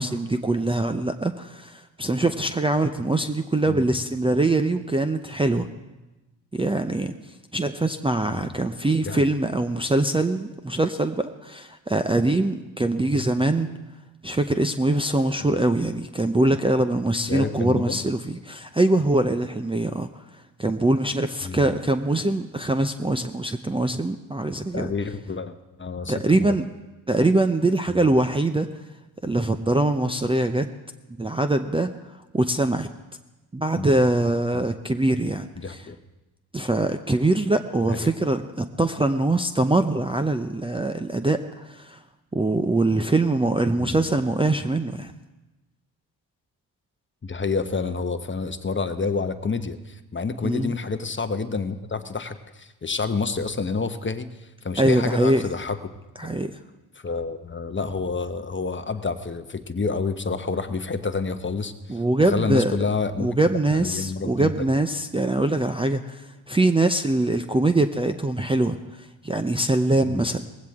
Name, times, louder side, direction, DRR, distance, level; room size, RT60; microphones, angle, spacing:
voice 1, 0.0-5.7 6.5-7.1 7.5-13.7 14.2-20.1 20.6-24.9 26.1-26.7 27.1-28.7 29.2-30.7 31.2-31.9 32.3-32.9 33.5-35.8 36.5-42.0 42.3-45.1 50.4-50.7 54.8-55.4 56.2-56.5 61.9-62.7 63.2-68.8 69.2-70.5, right 2 dB, 10° right, 5 dB, 0.6 m, -23 dB
voice 2, 17.3-18.0 21.4-21.6 24.7-26.5 27.9-28.1 33.8-33.9 34.5-34.6 35.5-36.0 37.9-38.1 43.8-44.0 47.2-55.8 57.0-63.4 63.7-64.7 70.1-70.3, left 4 dB, 25° left, 9 dB, 1.0 m, -29 dB
19.0 x 15.5 x 3.6 m, 1.1 s
supercardioid pair, 60°, 45 cm